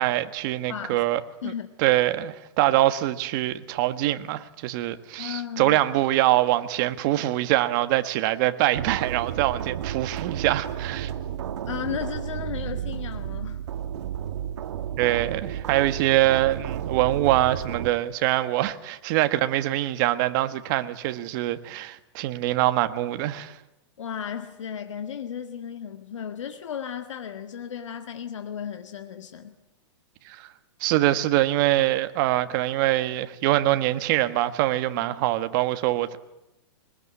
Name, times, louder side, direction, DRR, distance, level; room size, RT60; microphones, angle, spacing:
voice 1, 0.0-1.5 1.8-11.1 15.0-23.6 30.2-30.5 30.8-36.2, right 15 dB, 45° right, 1.6 m, -24 dB
voice 2, 0.7-1.0 1.4-1.7 5.2-5.8 11.7-13.6 24.0-29.6 35.0-35.2, left 8 dB, 90° left, 1.8 m, -35 dB
sound 1, 8.7-17.9, right 10 dB, 75° right, 2.1 m, -32 dB
23.0 x 20.5 x 9.8 m
hypercardioid pair, 150°, 15 cm